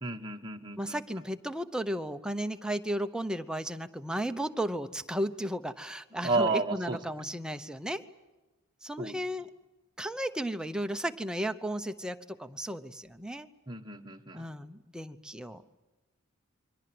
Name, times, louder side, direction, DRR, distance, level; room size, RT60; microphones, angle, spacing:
voice 1, 0.0-1.2 6.2-7.2 9.0-9.2 13.7-14.5, right 3 dB, 20° right, 3 dB, 1.4 m, -32 dB
voice 2, 0.8-8.0 8.8-9.5 10.0-13.5 14.3-15.6, right 1 dB, 5° right, 8 dB, 0.8 m, -34 dB
29.0 x 23.5 x 7.8 m, 1.1 s
head